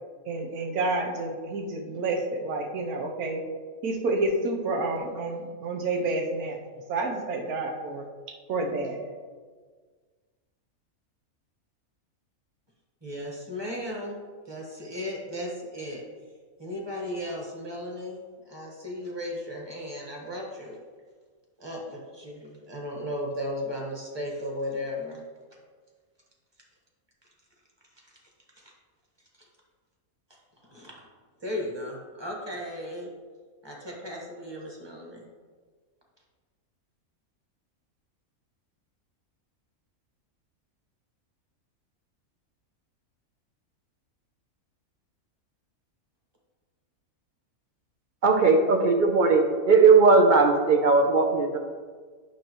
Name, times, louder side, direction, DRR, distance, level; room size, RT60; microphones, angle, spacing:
voice 1, 0.3-3.4 3.8-6.6 6.9-8.0 8.5-9.0, right 2 dB, 85° right, 2 dB, 1.3 m, -29 dB
voice 2, 13.0-14.2 14.4-16.0 16.6-20.8 21.6-25.2 28.6-28.7 30.7-30.9 31.4-33.1 33.6-35.2, left 1 dB, 20° right, -2 dB, 1.2 m, -35 dB
voice 3, 48.2-51.6, right 4 dB, 55° right, 4 dB, 0.5 m, -18 dB
9.1 x 6.3 x 3.0 m, 1.5 s
omnidirectional pair, 1.5 m